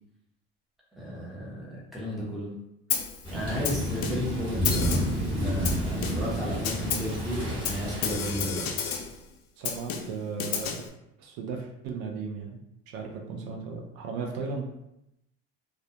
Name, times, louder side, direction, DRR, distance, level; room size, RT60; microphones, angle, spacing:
voice 1, 1.0-2.5 3.3-8.7, equal, ahead, -7 dB, 0.7 m, -34 dB
Snare drum, 2.9-3.2 3.6-4.4 4.6-5.2 5.6-6.4 6.6-7.2 7.6-9.2 9.6-10.9, left 7 dB, 65° left, 0.4 m, -32 dB
Thunder / Rain, 3.2-9.0, equal, 15° right, 1.1 m, -31 dB
voice 2, 9.6-10.9 11.2-12.6 12.9-14.7, right 5 dB, 70° right, 2 dB, 0.5 m, -36 dB
2.3 x 2.1 x 2.7 m, 0.82 s
cardioid pair, 125°, 30 cm